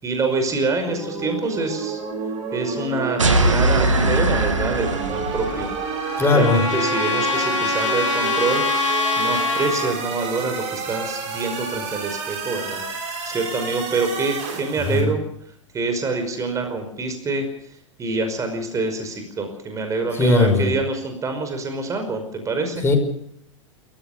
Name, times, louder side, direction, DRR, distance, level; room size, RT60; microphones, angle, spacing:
voice 1, 0.0-2.0 2.5-5.7 6.3-8.6 9.2-12.8 13.2-15.2 15.7-17.5 18.0-22.8, right 3 dB, 20° right, 6 dB, 5.4 m, -26 dB
sound 1, 0.9-15.0, right 5 dB, 40° right, 6.6 m, -30 dB
sound 2, 3.2-5.8, right 2 dB, 80° right, 3.0 m, -20 dB
Trumpet, 5.4-10.0, left 3 dB, 85° left, 3.8 m, -24 dB
voice 2, 6.2-6.6 14.9-15.1 20.1-20.7 22.8-23.0, left 3 dB, 15° left, 4 dB, 6.2 m, -18 dB
29.5 x 15.5 x 6.8 m, 0.71 s
figure-of-eight pair, 95°, 16 cm